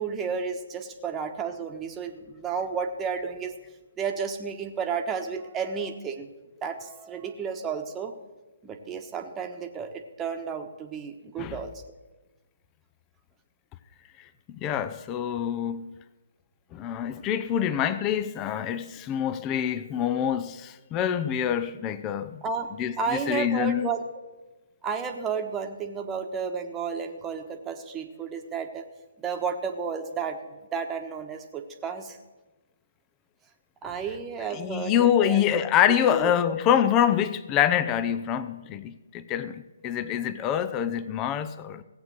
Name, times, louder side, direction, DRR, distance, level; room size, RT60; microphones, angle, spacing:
voice 1, 0.0-3.5 4.0-6.3 6.6-8.1 8.6-11.7 22.4-22.7 23.0-24.0 24.8-28.8 29.2-30.4 30.7-32.2 33.8-35.4 36.1-36.3, right 6 dB, 15° right, 1.3 m, -32 dB
voice 2, 14.5-15.9 16.7-22.4 22.8-23.9 34.5-41.8, left 9 dB, 20° left, 0.6 m, -26 dB
17.0 x 8.0 x 6.3 m
figure-of-eight pair, 135°, 0 cm